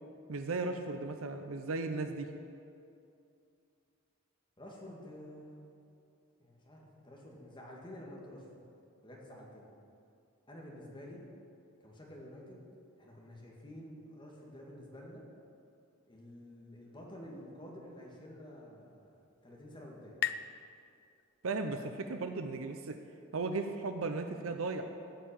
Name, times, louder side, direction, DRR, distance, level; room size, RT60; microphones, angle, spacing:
voice 1, 0.3-2.3 21.4-23.0 23.3-24.9, right 3 dB, 75° right, 6 dB, 0.7 m, -36 dB
voice 2, 4.6-5.7 6.4-8.7 9.0-9.7 10.5-11.2 11.8-12.6 13.0-15.2 16.1-19.1 19.4-20.2, left 1 dB, 25° left, -2 dB, 1.9 m, -50 dB
sound 1, 18.8-22.1, left 11 dB, 55° left, 0.4 m, -42 dB
14.0 x 5.7 x 8.7 m, 2.5 s
head